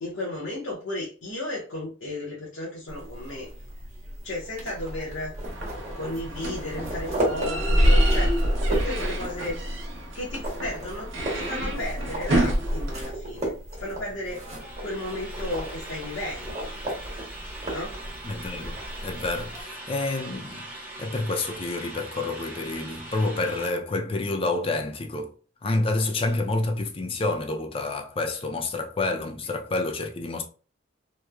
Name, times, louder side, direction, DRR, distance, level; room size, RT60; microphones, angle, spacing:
voice 1, 0.0-3.5 4.2-5.3 5.9-8.4 8.7-9.6 10.1-14.4 14.8-16.7 17.7-17.9, left 1 dB, 75° left, 0.7 m, -34 dB
sound 1, 2.9-19.6, right 1 dB, 35° right, 1.0 m, -35 dB
sound 2, 5.5-13.1, equal, 70° right, 0.7 m, -25 dB
sound 3, 14.6-23.7, right 2 dB, 10° right, 0.7 m, -41 dB
voice 2, 18.2-20.7 21.0-25.3 25.6-30.4, left 2 dB, 30° left, 0.4 m, -28 dB
3.0 x 2.0 x 2.3 m
head